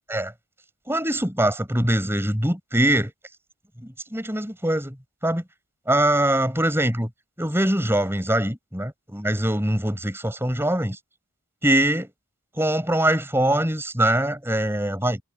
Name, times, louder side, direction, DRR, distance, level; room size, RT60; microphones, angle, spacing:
voice 1, 0.9-3.1 3.8-5.0 5.2-5.4 5.9-7.1 7.4-11.0 11.6-12.1 12.6-15.2, right 1 dB, 10° right, 7.5 m, -23 dB
head